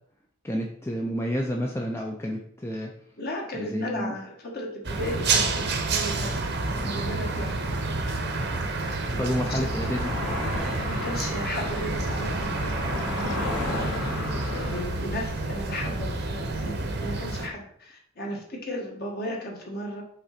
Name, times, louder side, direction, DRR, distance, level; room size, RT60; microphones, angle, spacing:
voice 1, 0.4-2.9 3.5-4.1 9.2-10.2, equal, 10° left, 0 dB, 0.5 m, -30 dB
voice 2, 3.2-6.4 6.7-7.9 9.1-9.2 9.5-10.0 10.5-13.9 14.5-20.0, left 1 dB, 45° left, 0 dB, 1.6 m, -35 dB
sound 1, 4.8-17.5, right 3 dB, 50° right, 0.9 m, -29 dB
sound 2, 6.2-14.8, left 2 dB, 80° left, 2.7 m, -35 dB
5.9 x 3.9 x 5.8 m, 0.65 s
head